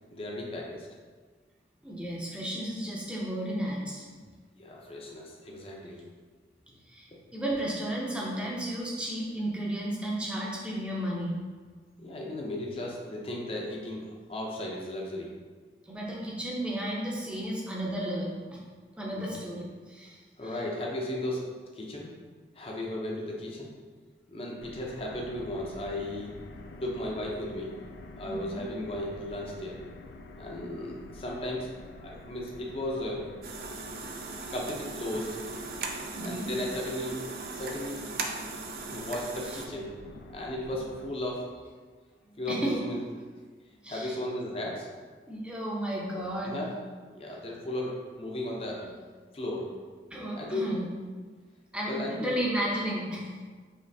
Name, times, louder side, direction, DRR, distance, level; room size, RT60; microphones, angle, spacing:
voice 1, 0.1-0.9 4.6-6.0 12.0-15.3 19.1-19.3 20.4-21.5 21.7-22.2 22.5-23.7 24.3-26.4 26.8-27.7 28.2-29.8 30.4-33.3 34.5-35.4 36.2-37.2 37.5-38.3 38.9-40.0 40.3-41.4 42.4-43.0 43.9-44.9 46.1-46.7 47.1-48.8 49.3-49.7 50.4-50.7 51.9-52.3, left 1 dB, 30° left, -2 dB, 0.6 m, -35 dB
voice 2, 1.8-4.0 6.9-11.4 15.8-18.6 19.0-20.6 28.2-28.6 36.1-36.5 42.3-42.9 43.8-44.2 45.3-46.6 50.1-50.8 51.7-53.3, right 1 dB, 5° right, -4 dB, 0.6 m, -33 dB
sound 1, 24.6-41.1, left 2 dB, 80° left, 0.4 m, -48 dB
sound 2, 33.4-39.7, right 3 dB, 55° right, 0.4 m, -38 dB
5.1 x 3.1 x 2.7 m, 1.5 s
head